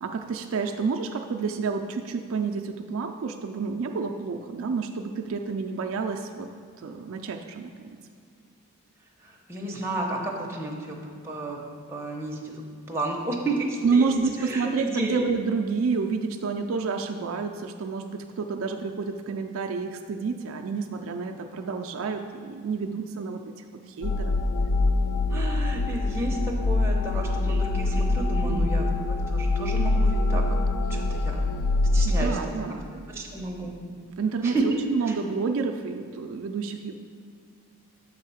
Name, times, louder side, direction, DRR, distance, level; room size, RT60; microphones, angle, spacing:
voice 1, 0.0-6.5 6.8-8.0 13.8-24.3 28.4-28.9 32.0-33.2 34.2-37.0, right 4 dB, 65° right, 4 dB, 0.3 m, -29 dB
voice 2, 9.2-11.0 11.2-11.6 11.9-14.1 14.4-15.3 25.3-30.4 30.9-31.4 31.9-32.6 33.1-33.7 34.4-34.6 35.1-35.2, right 2 dB, 10° right, -2 dB, 0.7 m, -32 dB
sound 1, 24.0-32.3, left 2 dB, 85° left, 0.3 m, -24 dB
7.4 x 3.6 x 5.5 m, 2.3 s
head